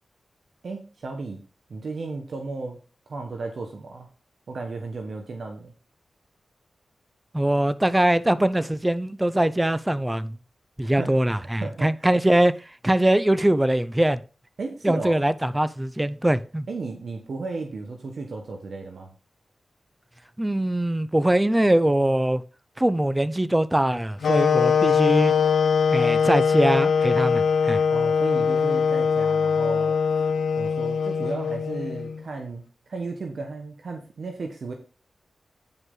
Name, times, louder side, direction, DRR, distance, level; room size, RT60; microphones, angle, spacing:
voice 1, 0.6-1.4 1.7-2.8 3.1-4.1 4.5-5.7 11.0-11.1 11.6-12.1 14.6-15.2 16.7-19.1 27.9-29.9 30.6-34.7, right 3 dB, 70° right, 1.3 m, -34 dB
voice 2, 7.3-10.4 10.8-12.5 12.8-14.2 14.8-16.6 20.4-22.4 22.8-25.3 25.9-27.8, right 1 dB, 15° right, 0.7 m, -22 dB
sound 1, 24.2-32.2, left 6 dB, 85° left, 1.0 m, -22 dB
9.5 x 5.3 x 3.9 m
cardioid pair, 40°, 0 cm